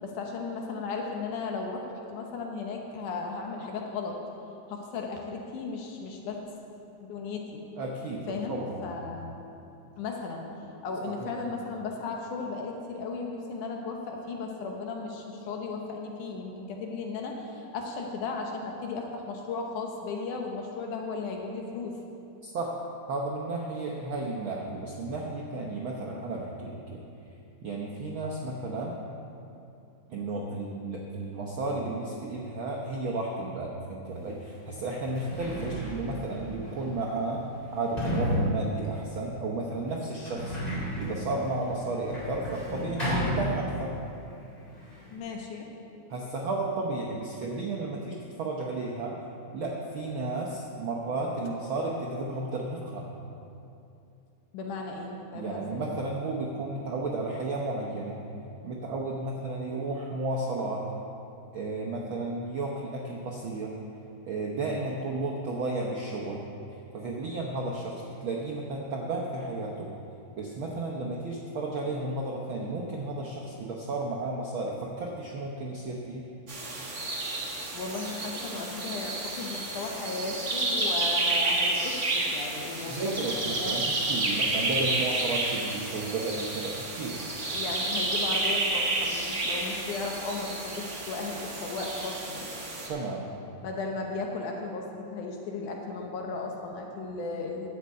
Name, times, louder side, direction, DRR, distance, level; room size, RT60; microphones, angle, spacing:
voice 1, 0.0-4.2 4.7-6.6 7.0-7.6 8.3-9.4 10.0-10.5 10.8-22.0 45.1-45.7 54.5-55.9 77.7-83.7 87.4-92.5 93.6-97.7, left 4 dB, 80° left, 1 dB, 2.5 m, -35 dB
voice 2, 7.8-8.8 11.2-11.3 22.4-22.7 23.1-27.0 27.6-29.0 30.1-37.4 37.7-40.6 41.0-43.9 46.1-49.1 49.5-53.1 55.3-58.2 58.6-60.8 61.5-63.7 64.3-66.4 66.9-69.9 70.4-76.2 82.9-87.2 92.9-93.3, right 2 dB, 75° right, -1 dB, 1.1 m, -33 dB
Sliding door, 34.2-34.3 34.9-44.1 44.3-45.2, equal, 10° left, 3.2 m, -33 dB
sound 1, 76.5-92.9, right 2 dB, 35° right, 1.3 m, -30 dB
11.0 x 6.6 x 8.4 m, 2.7 s
omnidirectional pair, 3.5 m